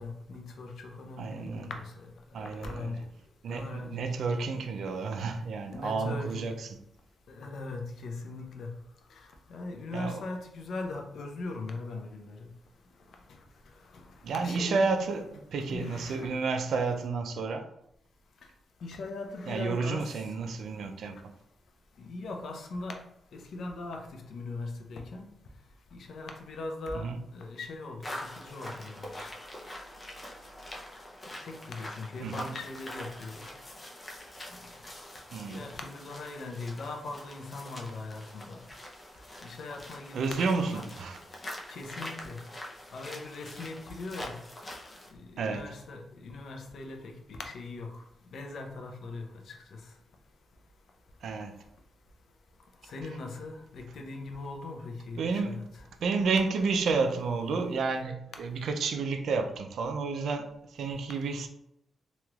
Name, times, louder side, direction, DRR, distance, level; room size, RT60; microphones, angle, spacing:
voice 1, 0.0-2.1 2.4-3.1 3.5-4.5 5.7-6.5 7.3-8.7 9.1-12.5 13.9-14.1 14.4-14.8 15.7-16.3 18.8-20.2 21.0-21.2 22.0-23.0 23.3-25.3 25.9-29.3 31.4-33.4 35.5-38.6 39.4-40.9 41.7-42.4 42.9-44.4 45.1-48.0 48.3-49.8 52.8-55.7, left 3 dB, 70° left, 0.5 m, -40 dB
voice 2, 1.2-1.7 2.3-3.0 3.4-6.8 9.9-10.2 14.2-17.7 19.5-21.3 26.9-27.2 32.2-32.5 35.3-35.7 40.1-41.2 45.4-45.7 51.2-51.6 55.2-55.6 56.0-61.5, right 4 dB, 75° right, 0.4 m, -31 dB
sound 1, 28.0-45.1, left 1 dB, 25° left, 0.5 m, -44 dB
3.0 x 2.9 x 2.3 m
cardioid pair, 120°, 0 cm